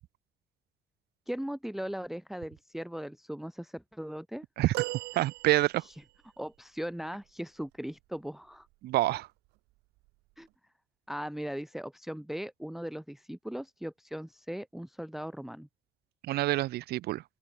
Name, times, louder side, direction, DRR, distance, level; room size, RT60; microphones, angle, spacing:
voice 1, 1.3-4.4 6.4-8.7 10.4-10.5 11.1-15.7, equal, ahead, 1.1 m, -38 dB
sound 1, 4.7-6.2 8.5-8.7 10.0-10.1, right 23 dB, 90° right, 0.4 m, -37 dB
voice 2, 5.2-5.9 8.8-9.3 16.2-17.2, right 16 dB, 70° right, 0.8 m, -27 dB
open air
cardioid pair, 110°, 17 cm